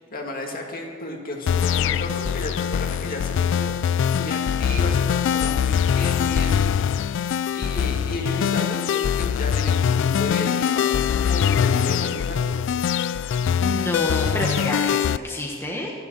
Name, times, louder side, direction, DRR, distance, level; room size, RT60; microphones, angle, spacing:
voice 1, 0.0-12.5, left 1 dB, 45° left, 1 dB, 2.3 m, -33 dB
sound 1, 1.5-15.2, left 8 dB, 60° left, 0.3 m, -22 dB
voice 2, 13.2-15.9, left 1 dB, 10° left, -2 dB, 1.4 m, -29 dB
13.0 x 11.0 x 7.6 m, 2.3 s
head